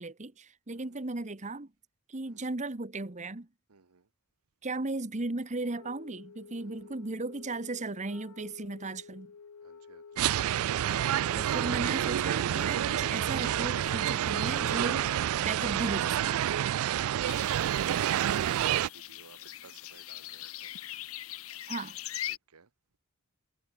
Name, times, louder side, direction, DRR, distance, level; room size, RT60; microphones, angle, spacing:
voice 1, 0.0-1.7 2.1-3.5 4.6-9.3 11.3-15.1 15.4-16.4 21.7-22.0, right 2 dB, 30° right, 1.2 m, -36 dB
voice 2, 3.7-4.1 6.6-6.9 9.6-10.3 17.0-20.7 22.3-22.7, right 5 dB, 90° right, 1.1 m, -55 dB
Wind instrument woodwind instrument, 5.6-15.4, left 5 dB, 85° left, 0.6 m, -49 dB
sound 1, 10.2-18.9, right 11 dB, 70° right, 0.3 m, -28 dB
sound 2, 17.3-22.4, left 13 dB, 70° left, 1.0 m, -41 dB
head